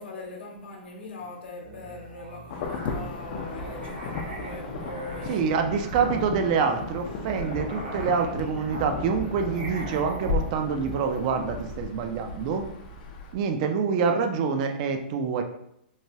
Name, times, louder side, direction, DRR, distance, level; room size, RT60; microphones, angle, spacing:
voice 1, 0.0-5.5 13.3-13.4 13.9-14.0, left 2 dB, 80° left, 1 dB, 0.8 m, -41 dB
Musical instrument, 1.6-11.7, right 2 dB, 75° right, 1.0 m, -41 dB
Insect / Thunder / Rain, 2.5-13.3, left 3 dB, 50° left, 0.4 m, -35 dB
voice 2, 5.3-12.7 13.3-15.4, right 6 dB, 45° right, 5 dB, 0.4 m, -26 dB
3.2 x 2.2 x 2.7 m, 0.76 s
hypercardioid pair, 145°, 6 cm